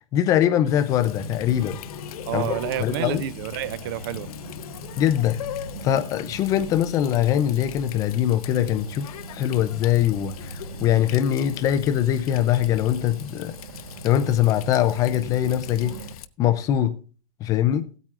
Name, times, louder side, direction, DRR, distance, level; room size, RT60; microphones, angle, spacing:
voice 1, 0.1-1.8 2.3-3.2 5.0-5.4 5.8-13.5 14.0-16.0 16.4-16.9 17.4-17.8, left 11 dB, 20° left, 0.4 m, -22 dB
Water tap faucet, 0.6-16.3, left 10 dB, 80° left, 0.8 m, -40 dB
sound 1, 0.9-16.1, right 4 dB, 70° right, 1.6 m, -42 dB
voice 2, 2.3-4.3, right 13 dB, 40° right, 0.5 m, -29 dB
16.5 x 8.9 x 2.4 m
supercardioid pair, 175°, 18 cm